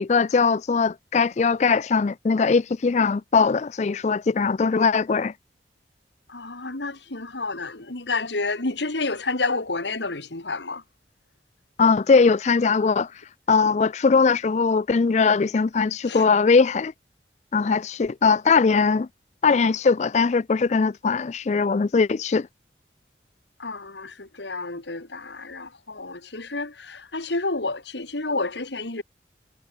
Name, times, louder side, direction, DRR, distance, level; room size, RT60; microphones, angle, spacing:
voice 1, 0.0-5.3 11.8-13.1 13.5-16.9 17.5-19.1 19.4-22.5, left 4 dB, 40° left, 0.4 m, -20 dB
voice 2, 6.3-10.8 13.7-13.8 16.1-16.2 23.6-29.0, left 3 dB, 80° left, 2.5 m, -30 dB
head